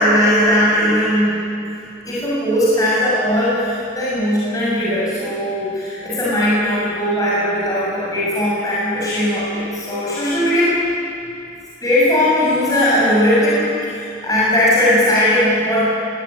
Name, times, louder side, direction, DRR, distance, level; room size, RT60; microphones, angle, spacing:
voice 1, 0.0-1.4 2.1-10.8 11.8-15.8, left 1 dB, 20° left, -8 dB, 7.0 m, -18 dB
22.5 x 19.0 x 9.8 m, 2.6 s
head